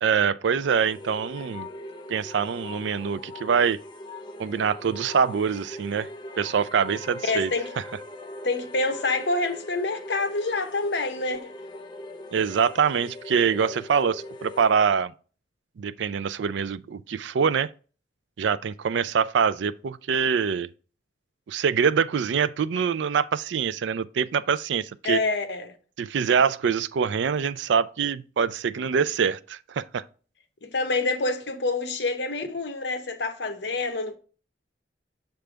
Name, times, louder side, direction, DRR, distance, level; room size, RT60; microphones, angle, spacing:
voice 1, 0.0-1.7 2.1-3.8 4.4-6.1 6.4-7.5 7.8-7.9 12.3-15.1 15.8-17.7 18.4-20.7 21.5-25.2 26.0-30.0, right 6 dB, 75° right, 0.4 m, -24 dB
sound 1, 0.6-14.8, left 1 dB, 25° left, 0.5 m, -41 dB
voice 2, 7.2-7.7 8.4-11.5 25.0-25.7 30.6-34.2, left 3 dB, 65° left, 0.9 m, -27 dB
6.7 x 3.4 x 5.0 m
head